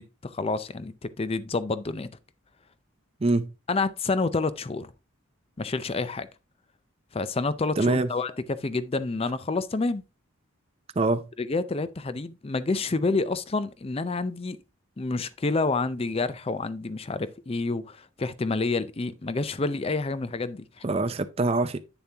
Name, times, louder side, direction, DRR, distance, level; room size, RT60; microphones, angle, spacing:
voice 1, 0.0-2.1 3.7-4.9 5.6-6.3 7.1-10.0 11.4-14.6 15.0-20.8 21.4-21.5, left 3 dB, 30° left, 0.5 m, -28 dB
voice 2, 3.2-3.5 7.8-8.1 11.0-11.3 20.8-21.8, right 2 dB, 30° right, 0.5 m, -24 dB
8.9 x 7.0 x 2.8 m
head